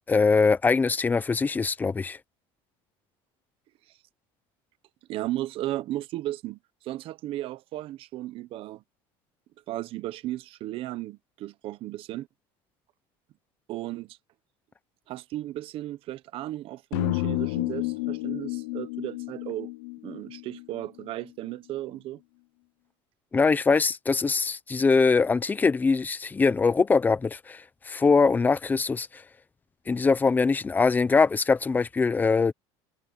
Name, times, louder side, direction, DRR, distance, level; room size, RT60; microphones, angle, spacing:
voice 1, 0.1-2.2 23.3-29.2 29.9-32.5, left 4 dB, 15° left, 0.7 m, -22 dB
voice 2, 5.1-8.8 9.7-12.3 13.7-14.2 15.1-19.7 20.0-22.2, right 15 dB, 45° right, 1.1 m, -35 dB
sound 1, 16.9-21.1, left 21 dB, 85° left, 0.9 m, -31 dB
cardioid pair, 145°, 12 cm